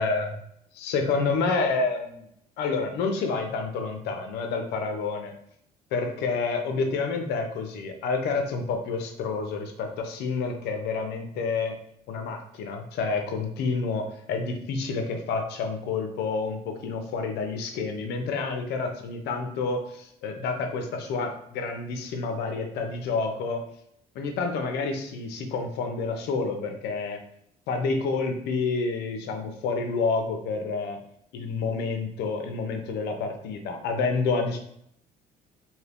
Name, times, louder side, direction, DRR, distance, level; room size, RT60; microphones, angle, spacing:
voice 1, 0.0-0.4 0.7-2.2 2.6-5.3 5.9-11.7 12.1-23.6 24.1-27.2 27.7-31.0 31.3-34.6, left 4 dB, 80° left, 5 dB, 0.6 m, -29 dB
2.8 x 2.7 x 3.4 m, 0.71 s
cardioid pair, 110°, 17 cm